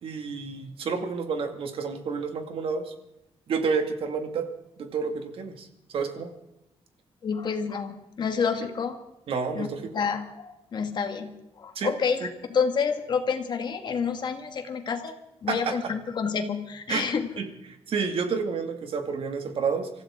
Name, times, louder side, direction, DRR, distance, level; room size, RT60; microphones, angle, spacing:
voice 1, 0.0-2.9 3.5-4.5 4.8-6.3 9.3-9.9 11.8-11.9 15.5-15.9 16.9-17.1 17.4-19.9, right 5 dB, 60° right, 5 dB, 2.3 m, -30 dB
voice 2, 7.2-9.0 9.6-9.7 9.9-15.2 15.4-17.3, left 6 dB, 45° left, 6 dB, 1.9 m, -28 dB
25.0 x 15.0 x 3.8 m, 0.87 s
wide cardioid pair, 165°, 11 cm